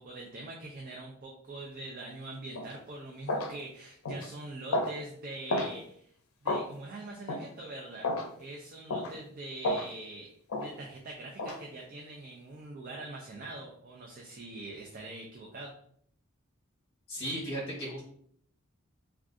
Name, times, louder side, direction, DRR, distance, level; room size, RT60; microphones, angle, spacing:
voice 1, 0.0-6.1 6.4-8.1 8.4-10.3 10.6-15.7, right 2 dB, 40° right, -1 dB, 0.4 m, -43 dB
sound 1, 2.6-2.7 3.3-3.5 4.1-4.3 4.7-5.0 5.5-5.7 6.5-6.7 7.3-7.5 8.0-8.3 8.9-9.1 9.6-9.9 10.5-10.7 11.4-11.6, left 1 dB, 80° left, 0.5 m, -31 dB
voice 2, 17.1-18.0, right 1 dB, 25° left, -6 dB, 1.0 m, -35 dB
2.5 x 2.3 x 3.6 m, 0.64 s
head